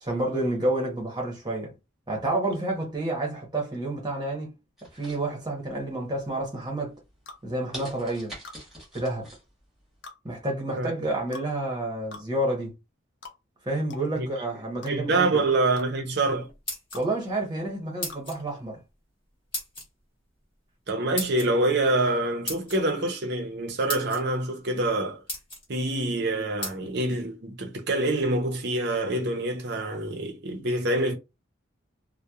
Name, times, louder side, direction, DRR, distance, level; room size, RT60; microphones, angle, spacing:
voice 1, 0.0-1.7 2.1-4.5 4.9-7.0 7.4-8.4 8.9-9.3 10.2-12.7 13.6-15.4 16.9-18.8, right 1 dB, 20° right, 0.9 m, -29 dB
sound 1, 4.8-5.8 6.2-6.6 7.1-7.2 7.7-9.4 9.8-9.9, equal, ahead, 1.2 m, -43 dB
sound 2, 7.3-7.4 8.4-8.6 10.0-10.2 11.3-11.5 12.1-12.3 13.2-13.4 13.9-14.1 14.8-14.9 15.8-15.9 16.9-17.1 18.1-18.3, left 3 dB, 60° left, 0.5 m, -43 dB
voice 2, 14.8-16.5 20.9-25.2 25.7-31.1, right 2 dB, 55° right, 0.7 m, -26 dB
sound 3, 16.4-17.3 18.0-18.4 19.5-19.9 21.2-21.5 22.5-22.8 23.5-23.6 23.9-24.2 24.8-24.9 25.3-25.6 26.6-26.8, left 1 dB, 25° left, 1.2 m, -34 dB
2.8 x 2.2 x 2.3 m
head